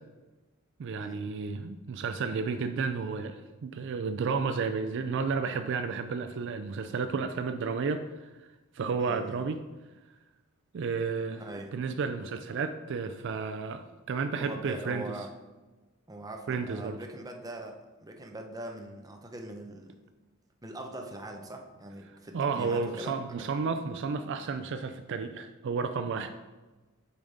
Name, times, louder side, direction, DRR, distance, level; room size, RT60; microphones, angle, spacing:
voice 1, 0.8-8.3 8.7-9.6 10.7-11.4 11.7-15.1 16.5-17.0 22.3-26.3, right 5 dB, 55° right, 9 dB, 0.4 m, -32 dB
voice 2, 9.0-9.4 11.4-11.7 14.4-15.3 16.1-19.9 20.6-23.2, right 1 dB, 15° right, 3 dB, 0.7 m, -42 dB
6.9 x 5.0 x 4.1 m, 1.2 s
head